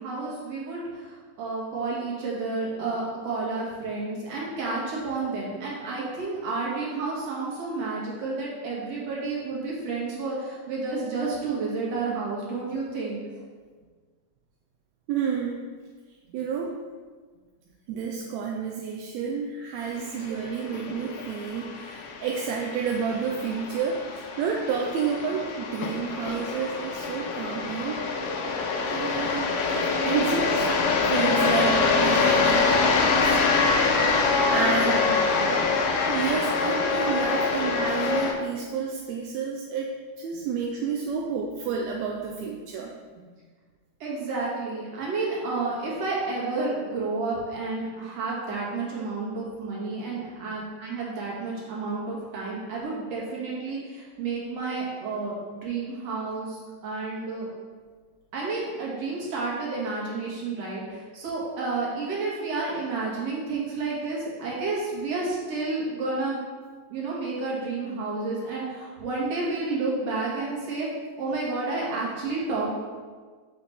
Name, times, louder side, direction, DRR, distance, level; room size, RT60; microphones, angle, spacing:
voice 1, 0.0-13.2 34.6-35.6 44.0-57.5 58.3-66.4 66.9-70.9 71.2-72.7, right 3 dB, 65° right, -5 dB, 2.6 m, -31 dB
voice 2, 15.1-15.7 16.3-16.7 17.9-28.0 28.9-29.6 30.0-30.7 31.1-33.4 34.5-35.0 36.1-42.9, right 6 dB, 80° right, 0 dB, 1.7 m, -30 dB
sound 1, 20.0-38.3, left 4 dB, 90° left, 1.2 m, -25 dB
6.8 x 5.7 x 3.5 m, 1.5 s
omnidirectional pair, 3.3 m